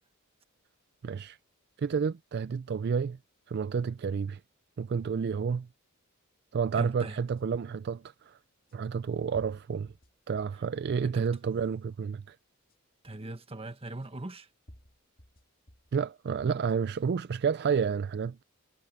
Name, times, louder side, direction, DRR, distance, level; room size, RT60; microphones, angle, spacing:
voice 1, 1.0-1.4 1.8-3.2 3.5-4.4 4.8-5.7 6.5-8.4 8.7-9.9 10.3-12.4 15.9-18.4, right 6 dB, 50° right, 0.3 m, -30 dB
voice 2, 6.7-7.2 11.0-11.3 13.0-14.5, right 2 dB, 25° right, 1.3 m, -40 dB
sound 1, 7.4-7.5 8.7-8.8 9.3-10.7 11.2-11.7 12.7-12.8 14.0-14.1 14.7-16.0 16.5-17.1, equal, 40° left, 2.6 m, -57 dB
head